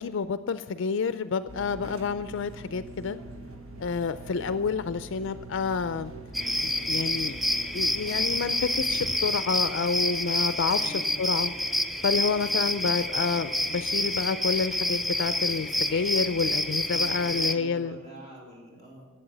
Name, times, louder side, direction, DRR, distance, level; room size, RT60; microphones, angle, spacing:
voice 1, 0.0-3.2 3.8-6.1 6.6-7.4 7.7-11.5 12.0-18.0, left 5 dB, 60° left, 12 dB, 0.4 m, -29 dB
sound 1, 1.5-9.2, right 2 dB, 85° right, 1.2 m, -44 dB
sound 2, 6.3-17.6, left 1 dB, ahead, 0.4 m, -28 dB
voice 2, 10.7-11.1 16.8-19.1, equal, 35° right, -4 dB, 3.6 m, -45 dB
12.0 x 7.7 x 7.7 m, 1.3 s
head